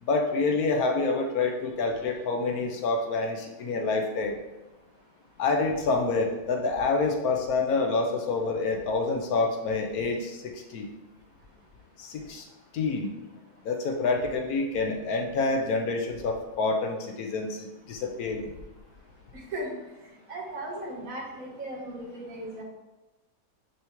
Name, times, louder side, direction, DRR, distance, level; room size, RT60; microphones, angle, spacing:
voice 1, 0.0-4.4 5.4-10.9 12.0-12.4 12.7-13.1 13.6-17.6 17.9-18.5, left 3 dB, 85° left, 3 dB, 1.3 m, -27 dB
voice 2, 20.3-22.6, right 1 dB, 70° right, -1 dB, 1.6 m, -36 dB
9.4 x 3.5 x 3.0 m, 1.1 s
omnidirectional pair, 1.5 m